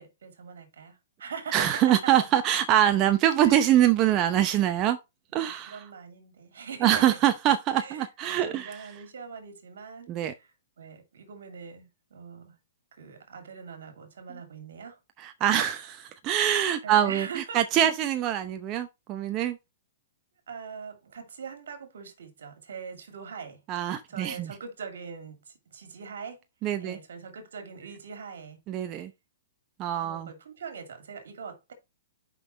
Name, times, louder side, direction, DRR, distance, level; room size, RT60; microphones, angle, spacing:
voice 1, 0.0-2.1 3.4-3.6 5.3-7.1 7.8-10.5 10.8-12.6 13.0-15.0 16.8-17.6 20.5-23.6 24.1-26.4 26.8-28.6 30.0-31.7, right 6 dB, 75° right, 2.4 m, -42 dB
voice 2, 1.5-5.0 5.3-5.8 6.8-8.9 10.1-10.3 15.2-19.6 23.7-24.5 26.6-27.0 28.7-29.1 29.8-30.3, right 11 dB, 30° right, 0.7 m, -24 dB
5.8 x 5.5 x 4.2 m
hypercardioid pair, 135°, 0 cm